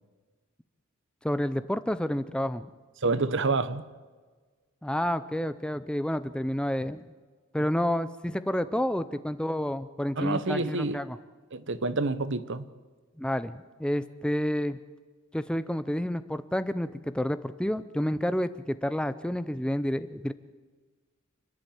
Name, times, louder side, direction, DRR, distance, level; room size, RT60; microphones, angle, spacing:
voice 1, 1.2-2.7 4.8-7.0 7.5-11.2 13.2-14.8 15.3-20.3, equal, 5° left, 0.5 m, -29 dB
voice 2, 3.0-3.8 10.2-11.0 11.5-12.7, right 3 dB, 60° right, 1.0 m, -28 dB
29.0 x 11.0 x 8.9 m
head